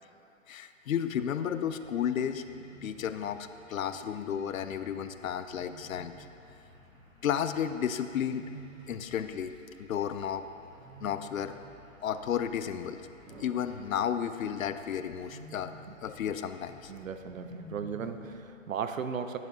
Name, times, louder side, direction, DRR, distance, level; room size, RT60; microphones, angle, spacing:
voice 1, 0.5-2.4 2.8-6.1 7.2-8.4 8.9-9.5 9.8-10.4 11.0-11.5 12.0-13.0 13.4-15.7 16.0-16.9, left 9 dB, 80° left, 10 dB, 0.6 m, -32 dB
Wild animals, 0.9-1.2 2.5-3.2 5.5-6.4 8.2-9.3 10.8-11.7 13.2-14.4 15.1-16.0 17.3-18.3, right 2 dB, 60° right, 1.5 m, -49 dB
sound 1, 1.2-18.4, left 2 dB, 15° right, 1.3 m, -58 dB
voice 2, 16.9-19.4, right 6 dB, 80° right, 8 dB, 0.7 m, -36 dB
10.5 x 7.6 x 2.8 m, 2.6 s
hypercardioid pair, 145°, 40 cm